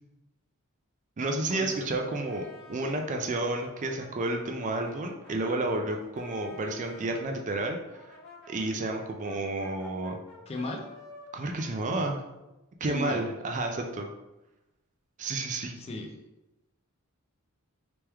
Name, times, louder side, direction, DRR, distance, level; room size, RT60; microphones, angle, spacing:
voice 1, 1.2-7.8 8.5-10.2 11.3-12.2 12.8-14.1 15.2-15.7, right 2 dB, 35° right, 3 dB, 0.4 m, -31 dB
Brass instrument, 1.5-7.3 7.9-12.6, left 1 dB, 50° left, 1.1 m, -51 dB
voice 2, 10.5-10.9 12.8-13.2 15.7-16.1, left 1 dB, 25° left, 2 dB, 0.4 m, -35 dB
3.3 x 3.0 x 3.4 m, 0.97 s
head